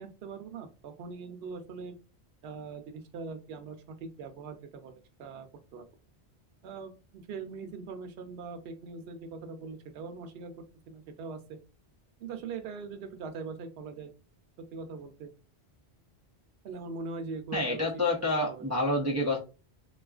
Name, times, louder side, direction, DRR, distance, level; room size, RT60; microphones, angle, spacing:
voice 1, 0.0-1.9 2.4-5.8 6.6-10.5 10.9-11.6 12.2-14.1 14.6-15.3 16.6-17.9 18.5-18.6, right 4 dB, 70° right, 6 dB, 0.8 m, -41 dB
voice 2, 17.5-19.4, left 1 dB, 25° right, -2 dB, 0.4 m, -28 dB
3.7 x 2.4 x 2.3 m, 0.32 s
omnidirectional pair, 1.1 m